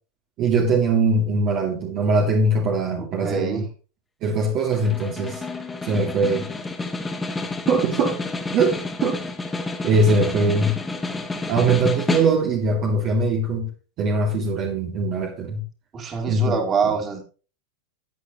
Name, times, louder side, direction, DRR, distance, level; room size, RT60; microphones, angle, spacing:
voice 1, 0.4-3.6 4.2-5.4 5.8-6.5 7.7-8.2 8.5-9.2 9.8-10.8 11.5-13.7 14.0-15.6 16.3-16.9, right 2 dB, 45° right, 2.1 m, -21 dB
voice 2, 3.0-3.7 15.9-17.2, right 5 dB, 30° right, 3.1 m, -25 dB
Snare drum, 4.7-12.7, left 3 dB, 15° left, 1.9 m, -30 dB
13.5 x 8.6 x 3.0 m
hypercardioid pair, 105°, 0 cm